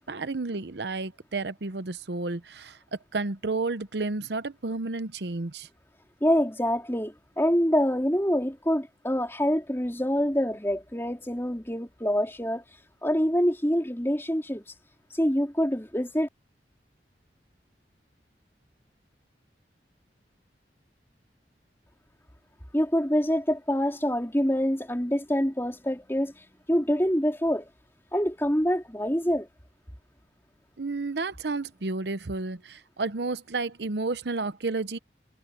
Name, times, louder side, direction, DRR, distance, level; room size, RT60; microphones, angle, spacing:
voice 1, 0.1-2.8 3.1-5.7 30.8-35.0, right 3 dB, 70° right, 0.8 m, -31 dB
voice 2, 6.2-12.6 13.0-14.6 15.1-16.3 22.7-26.3 26.7-27.7 28.1-29.5, equal, 15° left, 4.0 m, -26 dB
head